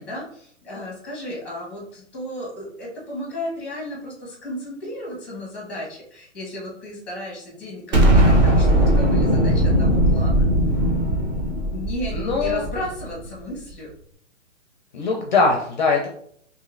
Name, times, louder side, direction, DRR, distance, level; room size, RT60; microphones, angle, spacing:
voice 1, 0.0-10.4 11.7-13.9, left 1 dB, 5° left, -4 dB, 0.7 m, -34 dB
Explosion, 7.9-13.1, right 1 dB, 35° right, 0.7 m, -18 dB
voice 2, 12.1-12.6 14.9-16.1, left 4 dB, 40° left, 1 dB, 0.4 m, -21 dB
3.0 x 2.7 x 2.5 m, 0.63 s
hypercardioid pair, 145°, 38 cm